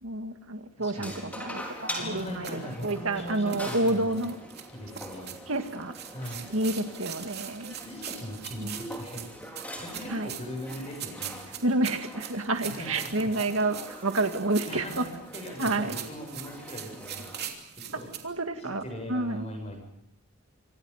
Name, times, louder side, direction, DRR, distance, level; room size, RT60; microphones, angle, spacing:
voice 1, 0.0-4.4 5.5-5.9 6.5-7.7 8.6-8.8 10.1-10.3 11.6-15.1 15.6-16.0 17.9-18.8 19.1-19.4, right 2 dB, 70° right, 6 dB, 2.0 m, -29 dB
voice 2, 0.8-1.1 2.0-4.2 4.7-5.3 6.1-6.4 6.9-7.0 7.8-9.3 9.7-11.6 12.6-13.3 14.7-18.1 18.6-19.8, left 1 dB, 30° left, 3 dB, 7.6 m, -40 dB
sound 1, 0.9-17.4, equal, 5° left, 4.5 m, -43 dB
sound 2, 2.2-18.2, right 9 dB, 45° right, 3.2 m, -42 dB
28.5 x 25.5 x 5.7 m, 0.77 s
head